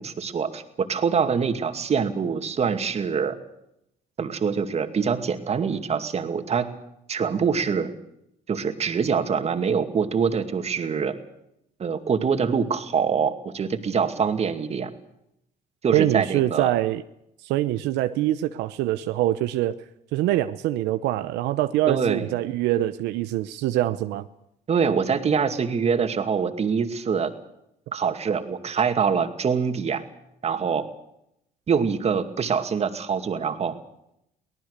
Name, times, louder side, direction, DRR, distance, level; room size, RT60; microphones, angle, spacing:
voice 1, 0.0-3.4 4.2-6.7 7.1-7.9 8.5-11.1 11.8-14.9 15.8-16.7 21.9-22.3 24.7-27.3 27.9-30.0 30.4-30.9 31.7-33.7, right 6 dB, 40° right, 7 dB, 2.3 m, -24 dB
voice 2, 15.9-17.0 17.4-19.8 20.1-24.3, right 14 dB, 90° right, 10 dB, 0.8 m, -24 dB
24.5 x 18.0 x 6.7 m, 0.80 s
cardioid pair, 110°, 17 cm